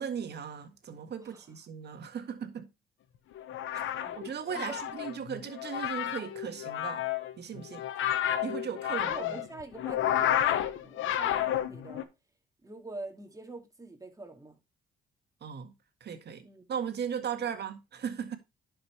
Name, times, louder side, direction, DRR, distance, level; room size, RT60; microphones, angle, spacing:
voice 1, 0.0-2.7 4.2-7.0 7.4-7.8 8.4-9.2 15.4-15.7 16.0-18.4, right 7 dB, 55° right, 1.7 m, -37 dB
voice 2, 1.2-1.5 4.0-4.8 8.5-12.1 12.6-14.6 16.4-16.6, right 2 dB, 15° right, 2.4 m, -46 dB
sound 1, 3.3-12.0, left 11 dB, 80° left, 1.0 m, -31 dB
11.0 x 5.5 x 3.2 m
cardioid pair, 90°, 20 cm